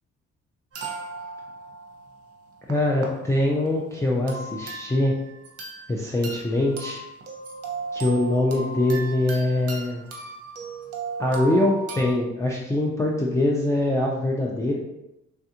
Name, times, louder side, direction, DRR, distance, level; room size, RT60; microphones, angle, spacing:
sound 1, 0.7-3.1 3.5-3.7 4.3-5.9 6.2-12.1, right 3 dB, 55° right, 0.7 m, -36 dB
voice 1, 2.7-5.2 5.9-7.0 7.9-10.0 11.2-14.8, left 1 dB, 10° left, -3 dB, 0.4 m, -23 dB
3.3 x 2.4 x 2.8 m, 0.90 s
cardioid pair, 90°, 30 cm